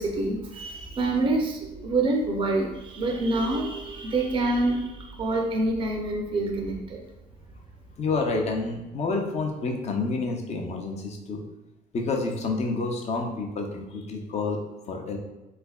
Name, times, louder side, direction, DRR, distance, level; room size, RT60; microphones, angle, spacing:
voice 1, 0.0-7.0, right 2 dB, 30° right, 0 dB, 0.5 m, -26 dB
voice 2, 8.0-11.4 11.9-14.6 14.9-15.2, left 3 dB, 40° left, 2 dB, 0.6 m, -29 dB
3.5 x 3.3 x 2.3 m, 1.0 s
cardioid pair, 110°, 17 cm